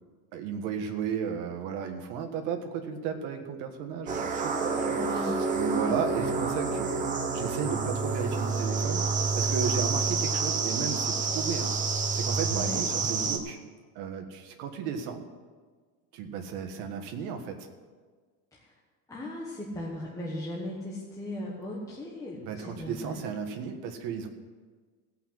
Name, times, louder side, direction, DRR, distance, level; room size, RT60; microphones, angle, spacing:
voice 1, 0.3-6.9 7.3-13.6 13.9-15.2 16.1-17.7 22.4-24.3, right 7 dB, 65° right, 5 dB, 1.6 m, -34 dB
sound 1, 4.1-13.4, right 4 dB, 20° right, 0.7 m, -28 dB
voice 2, 4.9-5.4 5.6-5.9 12.5-12.8 18.6-18.7 19.1-23.3, left 1 dB, 10° left, -4 dB, 1.2 m, -37 dB
16.5 x 5.7 x 7.8 m, 1.5 s
cardioid pair, 175°, 43 cm